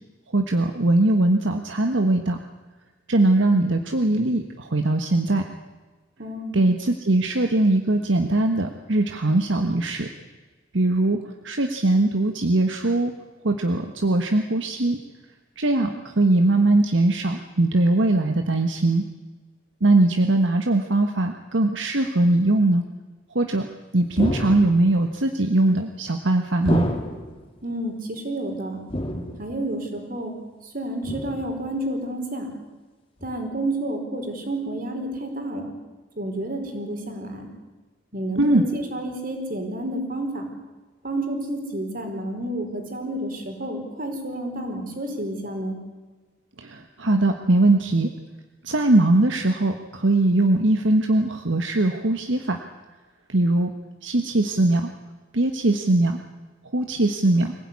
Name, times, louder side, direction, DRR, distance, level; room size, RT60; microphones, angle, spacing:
voice 1, 0.3-2.4 3.1-5.4 6.5-10.1 10.7-13.1 13.4-15.0 15.6-19.1 19.8-22.8 23.3-23.7 23.9-26.9 38.4-38.6 46.6-48.1 48.6-52.6 53.3-53.7 54.0-54.9 55.3-56.2 56.7-57.5, right 2 dB, 75° right, 5 dB, 1.5 m, -21 dB
voice 2, 6.2-6.6 27.6-28.8 29.4-30.4 30.6-32.5 33.2-35.7 36.2-37.5 38.1-40.5 41.0-45.8, right 1 dB, 50° right, 4 dB, 4.7 m, -30 dB
sound 1, 24.2-25.0 26.7-27.4 28.9-29.6 31.0-31.6 33.2-33.3, equal, 30° left, 3.0 m, -29 dB
24.5 x 16.5 x 9.8 m, 1.3 s
head